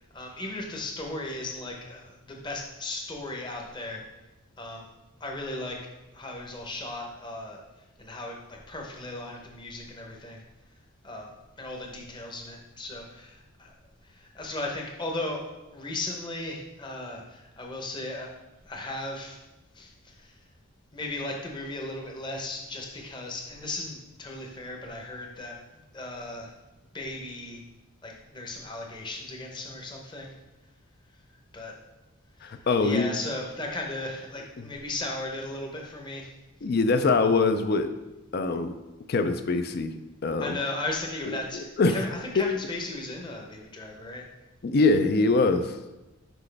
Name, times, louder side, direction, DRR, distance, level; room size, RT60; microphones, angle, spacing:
voice 1, 0.1-4.0 4.6-4.8 5.2-5.8 6.1-7.6 8.0-10.4 11.0-11.3 11.6-13.7 14.1-15.4 15.7-18.3 18.7-19.4 19.7-19.9 20.2-20.3 20.9-25.5 25.9-26.5 26.9-27.6 28.0-30.3 31.5-31.8 32.4-36.3 40.4-44.2, left 2 dB, 20° left, 0 dB, 0.8 m, -36 dB
voice 2, 32.4-33.1 36.6-37.9 38.3-38.8 39.1-39.9 40.2-40.6 41.5-42.0 42.4-42.5 44.6-45.8, left 3 dB, 45° left, 9 dB, 0.4 m, -23 dB
6.1 x 5.0 x 3.3 m, 1.0 s
head